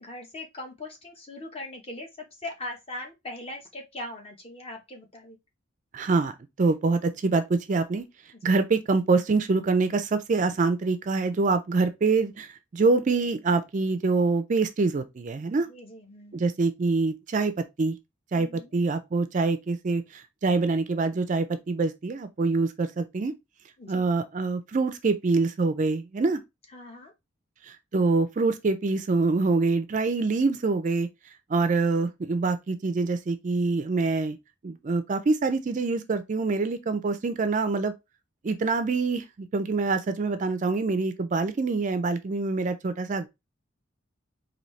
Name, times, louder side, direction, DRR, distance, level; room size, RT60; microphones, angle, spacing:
voice 1, 0.0-5.4 8.3-8.6 15.6-16.4 18.3-18.7 23.8-24.1 26.7-27.1, left 1 dB, 30° left, 1.0 m, -40 dB
voice 2, 5.9-6.3 6.6-8.0 8.4-15.7 16.3-17.9 18.3-23.3 23.9-26.4 27.7-31.1 31.5-34.4 34.6-37.9 38.4-43.3, right 3 dB, 40° right, 0.3 m, -25 dB
4.0 x 2.7 x 3.1 m
head